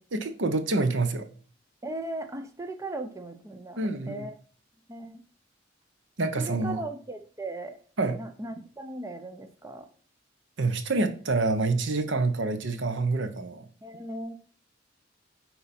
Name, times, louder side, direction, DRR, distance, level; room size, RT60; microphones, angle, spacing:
voice 1, 0.1-1.3 3.8-4.3 6.2-6.8 8.0-8.2 10.6-13.7, right 3 dB, 70° right, 8 dB, 0.9 m, -27 dB
voice 2, 1.8-3.8 4.1-4.3 4.9-5.2 6.3-7.8 8.1-9.9 13.8-14.4, right 2 dB, 15° right, 6 dB, 0.7 m, -37 dB
9.6 x 4.1 x 4.3 m, 0.41 s
head